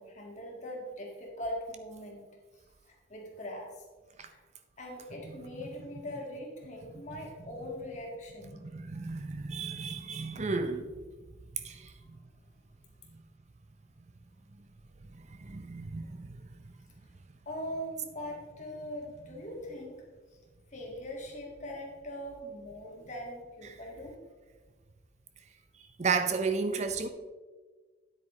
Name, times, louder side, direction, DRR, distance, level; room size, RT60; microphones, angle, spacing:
voice 1, 0.0-2.2 3.1-3.7 4.3-4.4 4.8-8.6 17.5-20.0 20.7-24.1, equal, 40° left, 1.9 m, -41 dB
voice 2, 8.6-10.9 11.5-12.2 15.1-16.4 23.6-23.8 26.0-27.1, right 4 dB, 35° right, 0.6 m, -33 dB
9.8 x 8.3 x 3.2 m
head